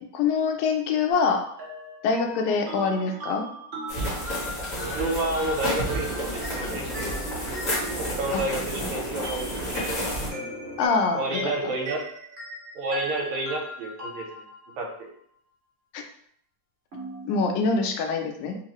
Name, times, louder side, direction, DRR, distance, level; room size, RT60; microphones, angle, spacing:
voice 1, 0.1-1.4 2.0-3.5 8.3-8.4 10.8-11.4 15.9-16.0 17.3-18.6, left 4 dB, 85° left, 3 dB, 2.0 m, -24 dB
sound 1, 1.1-8.6 9.2-14.9 16.9-17.7, equal, 65° right, 0.7 m, -38 dB
sound 2, 3.9-10.3, equal, 60° left, 0.9 m, -31 dB
voice 2, 4.9-7.4 8.0-10.1 11.1-12.0 12.8-14.5 14.8-15.1, right 2 dB, 80° right, 1 dB, 1.9 m, -30 dB
sound 3, 5.6-10.9, right 1 dB, 45° right, 1.9 m, -40 dB
4.7 x 2.4 x 3.0 m, 0.65 s
omnidirectional pair, 3.5 m